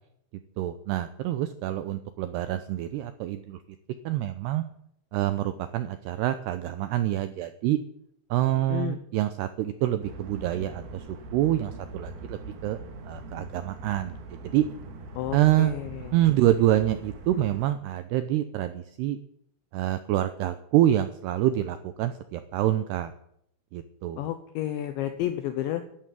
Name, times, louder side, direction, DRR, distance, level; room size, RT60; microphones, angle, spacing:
voice 1, 0.6-3.6 4.1-4.6 5.1-7.8 8.3-12.8 13.1-14.2 14.4-14.6 15.3-15.7 16.1-19.2 19.7-23.1 23.7-24.2, right 13 dB, 90° right, 10 dB, 2.3 m, -26 dB
voice 2, 8.5-9.0 15.2-16.1 24.2-25.8, left 12 dB, 75° left, 9 dB, 2.9 m, -31 dB
sound 1, 10.0-17.6, right 2 dB, 55° right, 3.7 m, -42 dB
13.5 x 11.0 x 9.4 m, 0.74 s
omnidirectional pair, 5.7 m